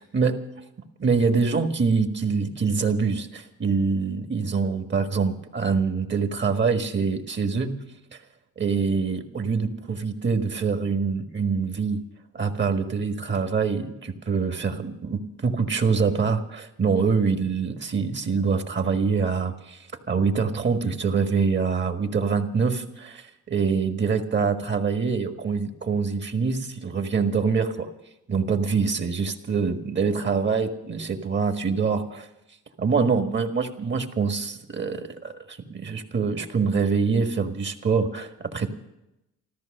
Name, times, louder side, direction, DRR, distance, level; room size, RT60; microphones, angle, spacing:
voice 1, 1.0-7.7 8.6-12.0 12.3-19.8 20.1-27.9 28.3-32.3 32.8-38.7, right 5 dB, 40° right, 6 dB, 1.6 m, -25 dB
14.0 x 14.0 x 6.6 m, 0.89 s
cardioid pair, 90°, 30 cm